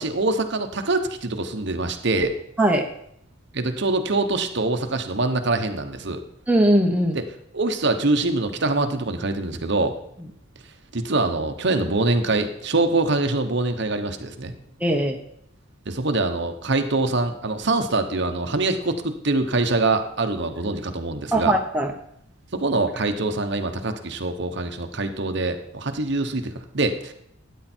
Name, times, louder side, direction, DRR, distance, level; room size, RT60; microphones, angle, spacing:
voice 1, 0.0-2.3 3.5-6.2 7.1-7.2 7.5-10.0 10.9-14.5 15.9-21.5 22.5-27.1, right 2 dB, 60° right, 7 dB, 1.1 m, -24 dB
voice 2, 6.5-7.2 14.8-15.2 21.3-21.9, right 1 dB, 5° right, 1 dB, 1.2 m, -20 dB
13.0 x 9.3 x 4.5 m, 0.72 s
head